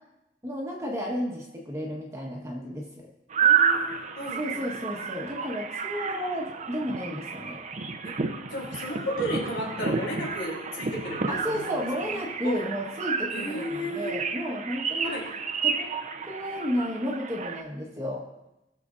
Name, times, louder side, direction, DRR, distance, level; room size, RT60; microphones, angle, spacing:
voice 1, 0.4-2.8 4.4-7.6 11.3-15.1 15.6-15.9 16.2-18.2, equal, 15° right, -2 dB, 1.3 m, -32 dB
sound 1, 3.3-17.6, right 6 dB, 40° right, 0.6 m, -30 dB
voice 2, 3.4-4.6 4.9-5.0 6.1-6.2 8.0-8.1 8.5-12.2 12.4-12.6 13.3-14.1 15.0-15.2, equal, 90° left, -3 dB, 3.4 m, -34 dB
19.0 x 6.8 x 2.5 m, 0.95 s
head